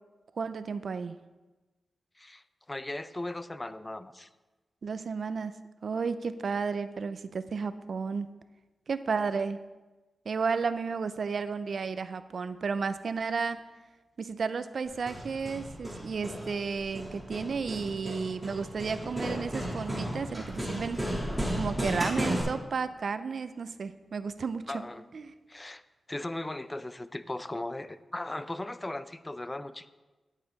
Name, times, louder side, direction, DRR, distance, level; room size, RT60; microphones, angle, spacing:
voice 1, 0.4-1.2 4.8-5.6 5.8-8.3 8.9-9.6 10.3-13.6 14.2-21.0 21.6-24.8 25.1-25.3, right 5 dB, 65° right, 12 dB, 0.4 m, -32 dB
voice 2, 2.7-4.3 24.7-25.0 25.5-25.8 26.1-29.9, left 2 dB, 20° left, 13 dB, 0.4 m, -37 dB
Hammer, 14.9-22.4, equal, 5° right, 3.0 m, -34 dB
10.0 x 8.5 x 4.0 m, 1.2 s
wide cardioid pair, 95°, 0 cm